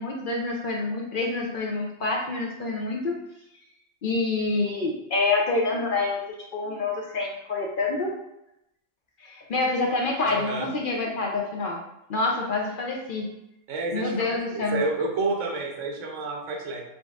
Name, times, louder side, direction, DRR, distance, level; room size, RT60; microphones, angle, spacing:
voice 1, 0.0-3.2 4.0-6.2 6.5-8.1 9.2-11.8 12.1-13.3 13.9-14.8, left 3 dB, 55° left, 0 dB, 0.7 m, -27 dB
voice 2, 10.2-10.7 13.7-16.8, right 3 dB, 85° right, 1 dB, 1.1 m, -30 dB
3.9 x 3.5 x 2.3 m, 0.84 s
omnidirectional pair, 1.2 m